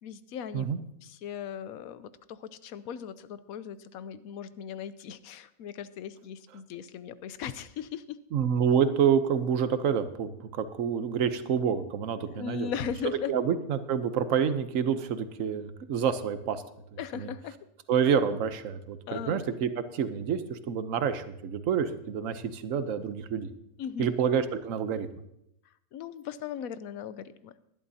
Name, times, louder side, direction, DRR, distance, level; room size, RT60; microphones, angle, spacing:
voice 1, 0.0-0.7 1.0-8.2 12.2-13.3 17.0-17.5 19.1-19.4 23.8-24.1 25.9-27.6, left 8 dB, 85° left, 14 dB, 1.1 m, -38 dB
voice 2, 8.3-12.7 13.3-16.6 17.1-17.3 17.9-23.5 24.0-25.1, right 7 dB, 70° right, 11 dB, 1.2 m, -28 dB
19.5 x 11.0 x 2.8 m, 0.79 s
omnidirectional pair, 1.5 m